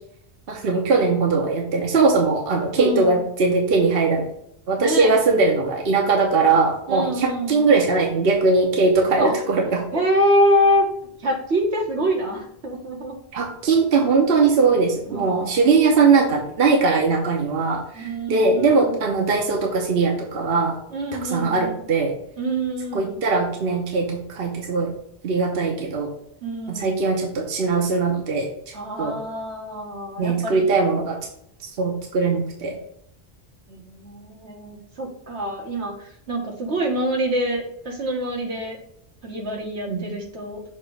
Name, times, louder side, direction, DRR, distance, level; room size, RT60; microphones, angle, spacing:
voice 1, 0.5-4.2 4.7-9.8 13.3-20.8 21.2-22.1 22.9-24.9 25.2-26.1 26.7-29.2 30.2-31.2 31.6-32.7 39.8-40.0, right 4 dB, 65° right, 1 dB, 1.1 m, -20 dB
voice 2, 2.8-3.2 4.8-5.1 6.9-7.7 9.2-9.3 9.9-10.9 11.2-13.2 15.1-15.7 17.9-19.1 20.9-21.8 22.4-23.2 26.4-27.0 28.7-30.7 33.7-38.8 39.2-40.6, equal, 85° right, -1 dB, 1.7 m, -25 dB
6.5 x 3.0 x 5.1 m, 0.72 s
omnidirectional pair, 1.1 m